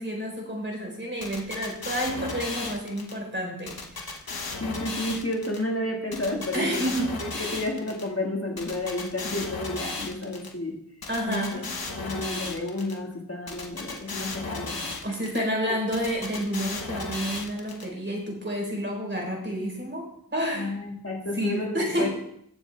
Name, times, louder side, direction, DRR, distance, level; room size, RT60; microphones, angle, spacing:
voice 1, 0.0-4.1 6.5-7.6 11.1-11.6 12.1-12.2 15.0-20.7 21.3-22.1, equal, 30° right, -1 dB, 4.0 m, -30 dB
sound 1, 1.2-3.1 3.7-5.6 6.1-8.0 8.6-10.5 11.0-12.9 13.5-15.4 15.9-17.8, left 3 dB, 70° left, 1.4 m, -35 dB
voice 2, 4.6-6.9 7.2-10.7 11.3-11.6 12.0-15.4 20.5-22.1, left 2 dB, 35° left, 0 dB, 1.9 m, -31 dB
15.5 x 7.1 x 3.4 m, 0.71 s
wide cardioid pair, 45°, 38 cm